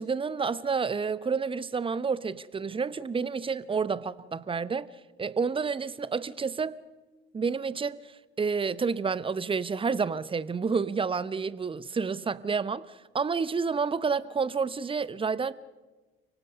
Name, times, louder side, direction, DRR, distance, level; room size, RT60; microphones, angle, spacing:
voice 1, 0.0-4.9 5.2-6.8 7.3-15.5, right 5 dB, 20° right, 0.8 m, -29 dB
30.0 x 18.0 x 5.4 m
figure-of-eight pair, 55°, 29 cm